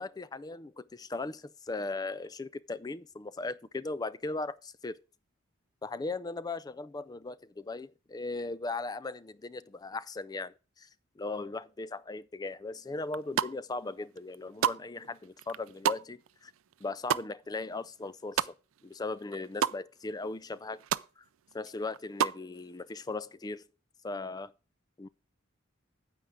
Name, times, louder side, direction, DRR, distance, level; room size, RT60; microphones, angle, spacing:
voice 1, 0.0-5.0 5.8-10.9 11.2-16.5 16.8-18.5 18.8-20.8 21.2-21.3 21.5-23.6 24.0-24.5 25.0-25.1, left 3 dB, 20° left, 0.4 m, -38 dB
Smacking Popping Lips, 13.1-13.8 14.2-18.9 19.2-19.8 20.2-20.3 20.5-21.1 21.5-22.4, right 8 dB, 85° right, 0.4 m, -32 dB
9.1 x 8.6 x 3.6 m
head